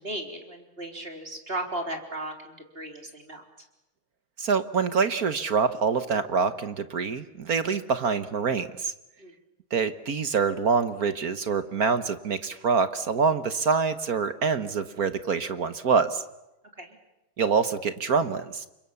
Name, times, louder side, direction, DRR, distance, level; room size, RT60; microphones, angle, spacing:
voice 1, 0.0-3.4 9.2-9.3 16.8-17.0, right 1 dB, 25° right, 3 dB, 4.1 m, -36 dB
voice 2, 4.4-8.9 9.7-16.2 17.4-18.7, right 5 dB, 50° right, 11 dB, 1.4 m, -25 dB
30.0 x 26.0 x 7.1 m, 0.94 s
omnidirectional pair, 2.4 m